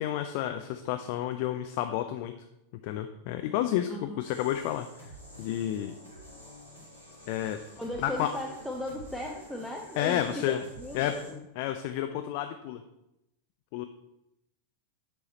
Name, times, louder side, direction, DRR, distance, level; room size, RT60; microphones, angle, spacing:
voice 1, 0.0-2.3 2.8-6.0 7.3-7.6 8.0-8.3 10.0-10.6 10.9-12.8 13.7-13.8, left 11 dB, 45° left, 7 dB, 0.4 m, -31 dB
sound 1, 4.2-11.3, equal, 80° right, 2.6 m, -49 dB
voice 2, 7.8-11.4, left 1 dB, ahead, -1 dB, 0.6 m, -37 dB
7.4 x 4.8 x 4.1 m, 0.87 s
figure-of-eight pair, 90°, 0 cm